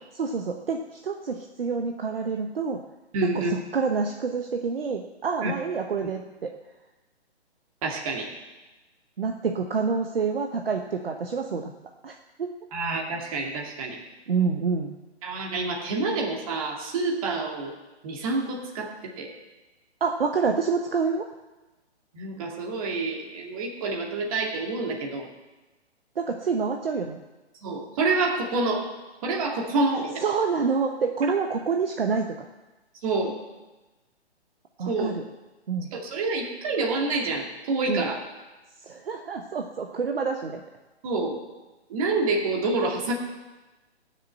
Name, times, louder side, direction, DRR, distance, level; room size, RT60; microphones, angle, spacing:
voice 1, 0.1-2.8 3.2-6.5 9.2-11.7 12.0-12.1 12.4-12.5 14.3-14.9 20.0-21.2 26.2-27.2 30.2-32.3 34.8-35.2 35.7-35.9 37.9-38.0 38.9-40.6, right 5 dB, 55° right, 3 dB, 1.1 m, -27 dB
voice 2, 3.1-3.5 5.4-5.5 7.8-8.3 12.7-14.0 15.2-17.7 18.0-19.3 22.1-25.3 27.6-28.9 29.2-30.2 33.0-33.3 34.9-35.1 35.9-38.2 41.0-41.4 41.9-43.1, right 3 dB, 30° right, 0 dB, 2.4 m, -27 dB
17.5 x 6.7 x 7.8 m, 1.1 s
figure-of-eight pair, 130°, 34 cm